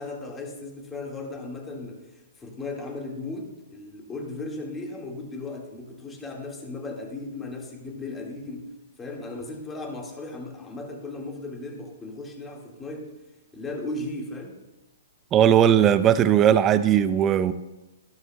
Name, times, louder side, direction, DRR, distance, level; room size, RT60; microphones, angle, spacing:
voice 1, 0.0-13.1 13.5-14.6, left 2 dB, 15° left, 1 dB, 1.7 m, -36 dB
voice 2, 15.3-17.5, right 10 dB, 25° right, 14 dB, 0.5 m, -18 dB
13.0 x 12.5 x 2.2 m, 1.0 s
hypercardioid pair, 120°, 0 cm